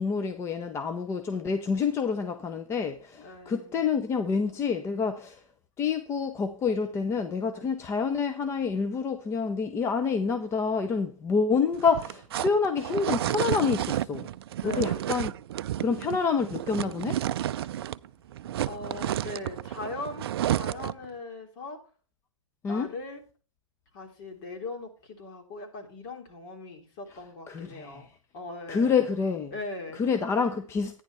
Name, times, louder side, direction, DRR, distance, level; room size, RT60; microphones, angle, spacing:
voice 1, 0.0-5.4 5.8-14.3 14.6-15.3 15.8-17.2 22.6-22.9 27.5-28.0 28.7-29.5 30.0-31.0, left 5 dB, 15° left, 0.8 m, -27 dB
voice 2, 3.2-3.9 5.0-5.2 7.5-7.7 14.6-15.2 15.8-16.1 18.6-21.8 22.7-23.2 23.9-28.1 28.3-29.1 29.5-30.0, left 3 dB, 45° left, 3.3 m, -40 dB
sound 1, 11.7-18.1 18.3-21.1, right 12 dB, 50° right, 0.4 m, -31 dB
14.0 x 10.0 x 3.5 m
figure-of-eight pair, 115°, 16 cm